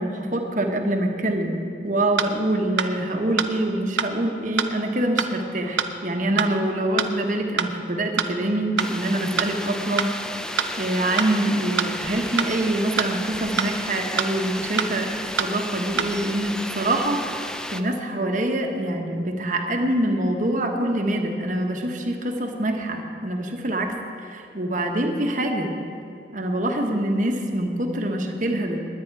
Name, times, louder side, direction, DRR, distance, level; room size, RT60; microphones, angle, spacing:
voice 1, 0.0-10.1 10.8-17.2 17.7-25.8 26.3-28.8, right 1 dB, 45° right, 3 dB, 1.3 m, -25 dB
sound 1, 2.2-2.3 2.8-2.9 3.4-3.5 4.0-4.1 4.6-4.7 5.2-5.3 5.8-5.9 6.4-6.5 7.0-7.1 7.6-7.7 8.2-8.3 8.8-8.9 9.4-9.5 10.0-10.1 10.6-10.7 11.2-11.3 11.8-11.9 12.4-12.5 13.0-13.1 13.6-13.7 14.2-14.3 14.8-14.9 15.4-15.5 16.0-16.1, right 6 dB, 90° right, 0.7 m, -23 dB
sound 2, 8.8-17.8, left 1 dB, 5° left, 0.5 m, -33 dB
20.0 x 9.7 x 4.8 m, 2.6 s
head